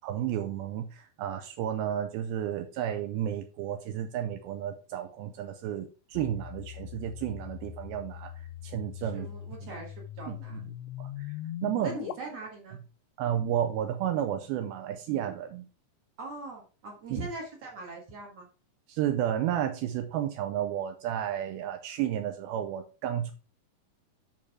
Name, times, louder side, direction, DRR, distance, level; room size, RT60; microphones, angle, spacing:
voice 1, 0.0-9.3 10.3-10.6 11.0-11.3 11.6-12.0 13.2-15.7 17.1-17.3 18.9-23.3, right 10 dB, 85° right, 7 dB, 2.2 m, -32 dB
sound 1, 6.2-12.1, left 13 dB, 90° left, 2.9 m, -41 dB
voice 2, 9.0-10.6 11.8-12.8 16.2-18.5, right 2 dB, 55° right, -1 dB, 1.8 m, -42 dB
11.0 x 3.9 x 4.8 m, 0.36 s
omnidirectional pair, 5.1 m